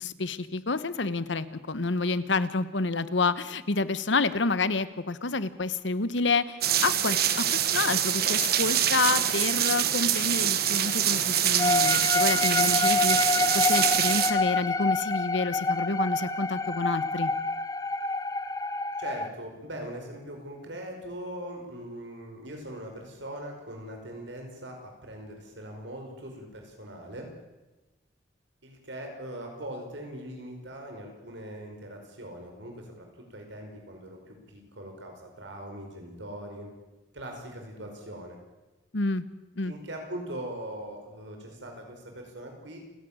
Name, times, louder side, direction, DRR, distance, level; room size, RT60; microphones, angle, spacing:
voice 1, 0.0-17.3 38.9-39.2 39.5-39.7, left 3 dB, 80° left, 15 dB, 1.1 m, -29 dB
sound 1, 6.6-14.3, right 10 dB, 55° right, 1.4 m, -25 dB
sound 2, 11.6-19.3, left 3 dB, 20° left, 0.7 m, -27 dB
voice 2, 19.0-27.3 28.6-36.7 37.1-38.4 39.6-42.8, right 1 dB, 80° right, 2 dB, 5.3 m, -41 dB
29.0 x 11.0 x 8.9 m, 1.1 s
head